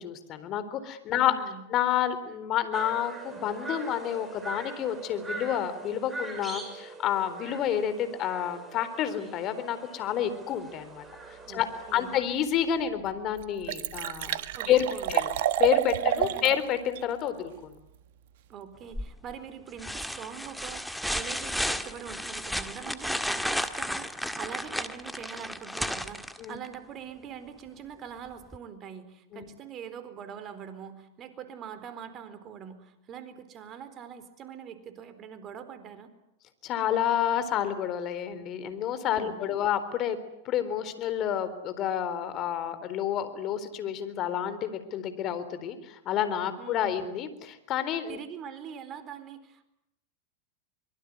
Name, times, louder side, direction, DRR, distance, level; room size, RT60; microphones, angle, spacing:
voice 1, 0.0-1.3 1.7-11.0 11.5-11.7 11.9-14.8 15.1-15.3 15.6-17.7 26.4-26.6 29.3-29.5 36.6-40.2 40.4-48.2, left 10 dB, 40° left, 12 dB, 3.9 m, -29 dB
voice 2, 1.1-1.6 11.4-12.1 14.5-15.1 16.0-16.6 18.5-36.1 39.2-39.6 46.6-47.0 48.1-49.7, right 8 dB, 35° right, 11 dB, 4.3 m, -43 dB
sound 1, 2.7-12.2, right 3 dB, 15° right, 7.1 m, -42 dB
Liquid, 12.5-12.6 13.1-13.2 13.4-16.6 17.0-17.1, right 12 dB, 65° right, 1.7 m, -29 dB
sound 2, 18.9-19.3 19.8-26.7 28.5-28.6, equal, ahead, 1.9 m, -33 dB
25.0 x 23.0 x 9.6 m, 0.83 s
hypercardioid pair, 100°, 0 cm